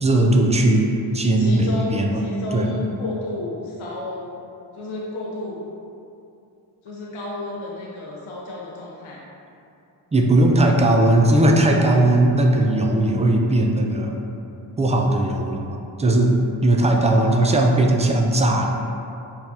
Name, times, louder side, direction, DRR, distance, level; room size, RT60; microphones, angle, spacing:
voice 1, 0.0-2.2 2.5-2.7 10.1-14.2 14.8-16.3 16.6-18.7, right 1 dB, 15° right, 1 dB, 0.4 m, -18 dB
voice 2, 1.4-4.4 4.7-5.6 6.8-9.2 16.9-17.5, left 2 dB, 70° left, -5 dB, 0.8 m, -31 dB
5.7 x 2.3 x 2.7 m, 2.7 s
cardioid pair, 50°, 50 cm